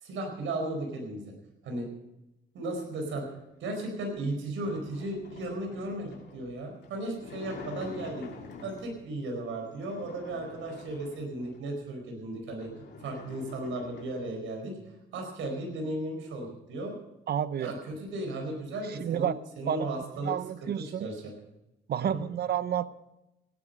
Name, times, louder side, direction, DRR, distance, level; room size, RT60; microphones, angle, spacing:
voice 1, 0.0-1.3 1.6-1.9 2.5-3.2 3.6-8.3 8.6-12.7 13.0-14.8 15.1-17.0 17.6-20.3 20.6-21.3 22.1-22.2, right 2 dB, 80° right, 2 dB, 4.6 m, -35 dB
sound 1, 3.9-9.1 9.6-11.7 12.2-12.3 12.5-14.4, left 4 dB, 60° left, 2.8 m, -47 dB
voice 2, 17.3-17.7 18.9-19.4 19.7-19.9 20.2-21.1 21.9-22.9, right 9 dB, 55° right, 15 dB, 0.7 m, -30 dB
17.0 x 9.8 x 5.3 m, 0.92 s
cardioid pair, 90°, 20 cm